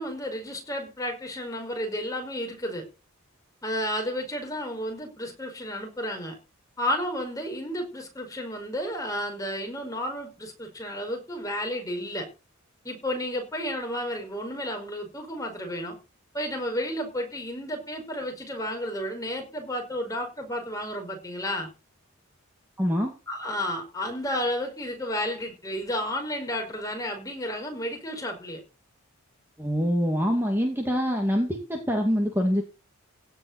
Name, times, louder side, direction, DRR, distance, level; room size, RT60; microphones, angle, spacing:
voice 1, 0.0-2.9 3.6-6.4 6.8-12.3 12.8-16.0 16.3-21.7 23.3-28.6, equal, 15° left, 3 dB, 5.3 m, -32 dB
voice 2, 22.8-23.1 29.6-32.6, equal, 10° right, 2 dB, 2.5 m, -25 dB
17.0 x 5.7 x 8.2 m, 0.31 s
head